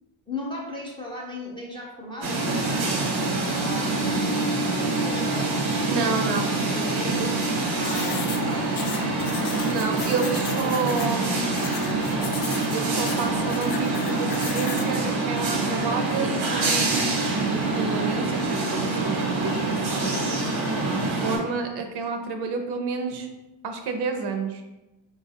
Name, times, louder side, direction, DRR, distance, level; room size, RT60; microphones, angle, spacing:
voice 1, 0.3-5.7 6.7-9.6, left 1 dB, 10° left, -2 dB, 0.4 m, -38 dB
sound 1, 2.2-21.4, right 2 dB, 90° right, 1.0 m, -25 dB
voice 2, 5.9-6.6 7.1-7.5 9.5-11.5 12.0-12.1 12.7-20.2 20.7-23.3 23.6-24.6, right 4 dB, 60° right, 5 dB, 0.5 m, -30 dB
sound 2, 7.8-14.9, left 5 dB, 60° left, 0.6 m, -36 dB
3.7 x 2.3 x 2.7 m, 1.0 s
cardioid pair, 125°, 45 cm